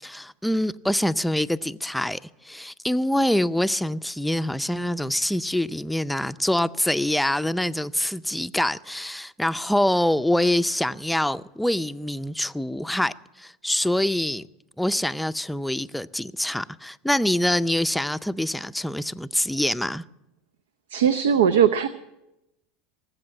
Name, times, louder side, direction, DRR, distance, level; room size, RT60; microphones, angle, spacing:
voice 1, 0.0-14.5 14.8-20.0, left 1 dB, 5° left, 0.5 m, -25 dB
voice 2, 20.9-21.9, right 8 dB, 80° right, 0.5 m, -19 dB
19.0 x 7.9 x 8.9 m
hypercardioid pair, 90°, 0 cm